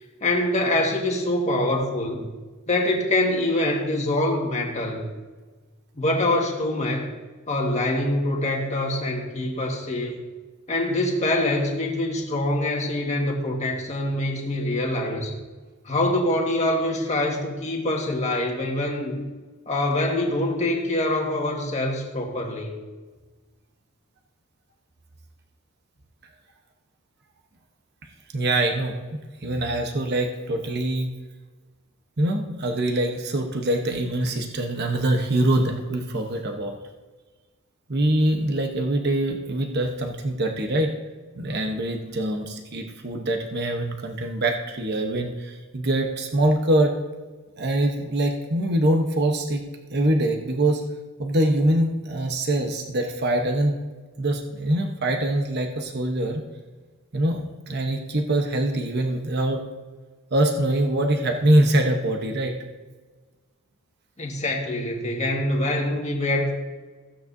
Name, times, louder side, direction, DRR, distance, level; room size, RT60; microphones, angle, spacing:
voice 1, 0.2-2.3 2.7-5.1 5.9-7.1 7.5-10.2 10.7-15.3 15.8-19.2 19.7-22.8 64.2-66.5, left 1 dB, 35° left, 0 dB, 1.7 m, -25 dB
voice 2, 28.3-31.1 32.2-36.7 37.9-40.9 41.3-46.9 47.6-49.6 49.9-50.8 51.2-53.8 54.2-56.4 57.1-59.6 60.3-62.5, right 1 dB, 50° right, 3 dB, 1.0 m, -24 dB
15.5 x 8.8 x 2.7 m, 1.3 s
head